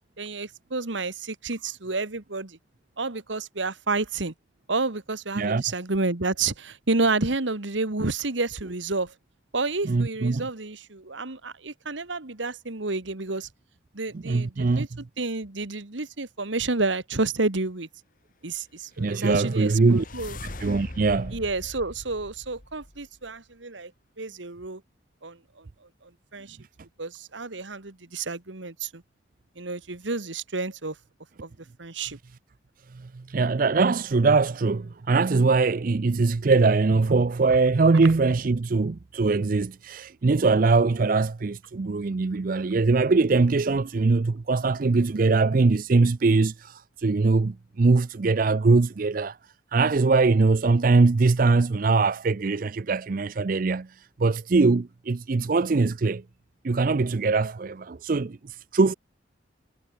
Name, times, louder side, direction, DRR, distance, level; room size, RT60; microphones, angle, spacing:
voice 1, 0.2-2.6 3.0-4.3 4.7-9.1 9.5-13.5 13.9-14.9 15.2-17.9 18.4-20.4 21.3-23.9 24.2-24.8 25.2-25.7 26.0-26.6 27.0-29.0 29.6-31.0 31.4-31.5 31.8-32.2, right 3 dB, 75° right, 1.8 m, -30 dB
voice 2, 9.8-10.5 14.1-15.0 19.0-20.0 20.4-21.4 32.9-49.4 49.7-56.2 56.6-58.9, right 3 dB, 45° right, 0.5 m, -22 dB
sound 1, 19.1-23.3, left 1 dB, 45° left, 1.9 m, -41 dB
head